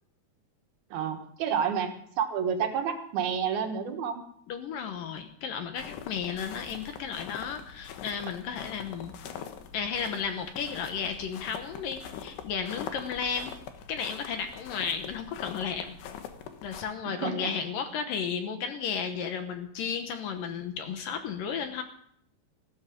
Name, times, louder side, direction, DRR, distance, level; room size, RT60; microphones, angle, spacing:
voice 1, 0.9-4.2 17.1-17.5, right 7 dB, 70° right, 5 dB, 3.2 m, -30 dB
voice 2, 4.5-9.1 9.7-13.6 13.9-16.0 16.6-21.8, left 6 dB, 70° left, 7 dB, 2.5 m, -33 dB
sound 1, 5.8-16.8, left 8 dB, 85° left, 3.4 m, -43 dB
16.0 x 13.5 x 5.2 m, 0.67 s
omnidirectional pair, 4.7 m